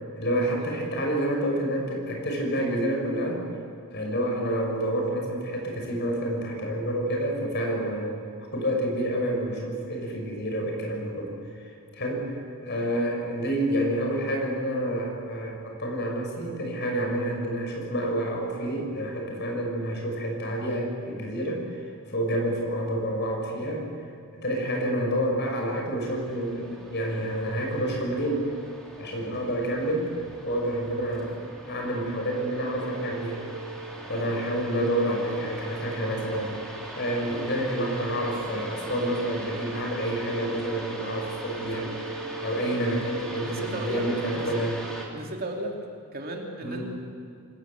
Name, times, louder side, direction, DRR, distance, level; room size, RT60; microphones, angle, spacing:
voice 1, 0.2-3.4 3.9-8.1 8.5-11.3 11.9-21.8 22.1-23.8 24.3-28.4 29.0-30.1 30.4-31.3 31.7-33.4 34.1-36.5 36.9-41.9 42.4-44.8 46.6-46.9, right 1 dB, 50° left, 1 dB, 6.4 m, -28 dB
voice 2, 24.6-24.9 34.1-34.5 37.3-37.5 41.7-41.9 43.4-44.6 45.1-45.8 46.1-46.9, right 1 dB, 45° right, 1 dB, 2.9 m, -36 dB
sound 1, 26.0-45.1, right 2 dB, 5° left, 3.5 m, -39 dB
27.0 x 20.0 x 8.3 m, 2.4 s
head